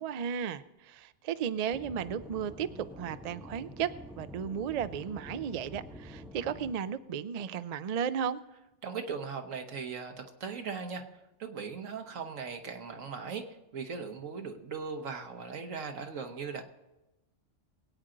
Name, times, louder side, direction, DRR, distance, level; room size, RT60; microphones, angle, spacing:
voice 1, 0.0-8.4, right 8 dB, 65° right, 14 dB, 0.4 m, -34 dB
Aircraft / Engine, 1.7-6.7, equal, ahead, 0.8 m, -47 dB
voice 2, 8.8-11.0 11.4-13.4 13.7-16.6, right 5 dB, 85° right, 5 dB, 1.5 m, -38 dB
22.5 x 8.8 x 3.9 m, 1.0 s
omnidirectional pair, 1.3 m